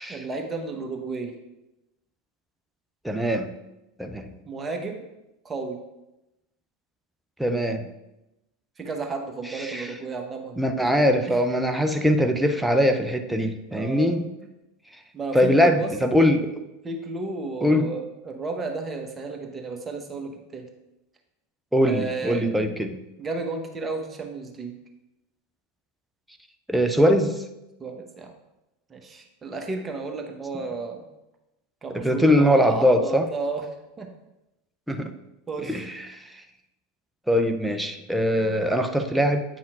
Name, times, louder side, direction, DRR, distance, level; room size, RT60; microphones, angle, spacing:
voice 1, 0.1-1.3 4.4-5.1 5.4-5.8 8.8-11.4 13.7-14.2 15.1-15.9 16.8-20.7 21.9-22.4 23.2-24.7 27.8-28.3 28.9-31.1 31.8-33.7 34.0-34.1 35.5-35.8, right 3 dB, 20° right, 3 dB, 0.9 m, -33 dB
voice 2, 3.0-3.5 4.0-4.3 7.4-7.9 9.5-9.9 10.6-14.3 15.3-16.6 17.6-17.9 21.7-23.0 26.7-27.4 31.9-33.3 34.9-35.1 35.6-36.4 37.3-39.4, equal, 5° right, 6 dB, 0.5 m, -22 dB
8.8 x 5.6 x 2.4 m, 0.94 s
figure-of-eight pair, 85°, 0 cm